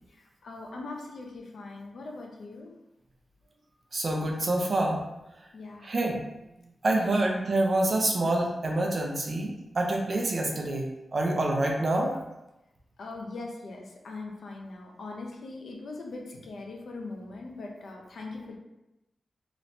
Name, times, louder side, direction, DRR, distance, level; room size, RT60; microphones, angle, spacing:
voice 1, 0.1-2.7 5.5-5.9 6.9-7.1 13.0-18.6, left 3 dB, 80° left, 0 dB, 0.6 m, -41 dB
voice 2, 3.9-5.0 5.8-6.2 6.8-12.2, right 2 dB, 45° right, 0 dB, 0.6 m, -27 dB
3.1 x 3.0 x 2.6 m, 0.93 s
wide cardioid pair, 135°, 0 cm